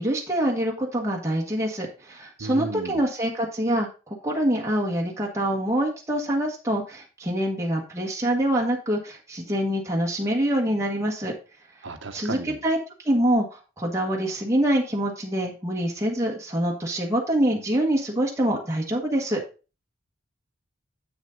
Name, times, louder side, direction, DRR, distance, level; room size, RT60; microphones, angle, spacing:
voice 1, 0.0-11.3 12.1-12.8 13.0-19.4, right 1 dB, 15° right, -2 dB, 1.4 m, -25 dB
voice 2, 2.4-3.0 11.8-12.6, right 3 dB, 70° right, 7 dB, 1.1 m, -34 dB
8.1 x 6.3 x 3.8 m, 0.32 s
head